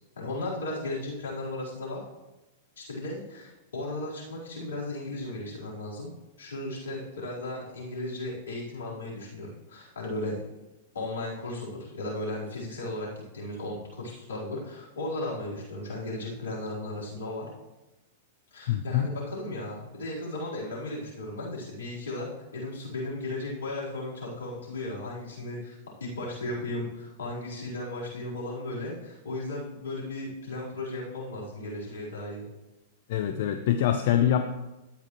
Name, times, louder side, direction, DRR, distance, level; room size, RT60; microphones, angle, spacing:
voice 1, 0.2-2.0 2.8-6.1 6.4-10.4 10.9-17.5 18.5-32.4, left 2 dB, 85° left, -6 dB, 4.1 m, -35 dB
voice 2, 18.7-19.1 33.1-34.5, left 10 dB, 60° left, 8 dB, 0.6 m, -24 dB
12.5 x 8.7 x 3.1 m, 1.0 s
hypercardioid pair, 105°, 0 cm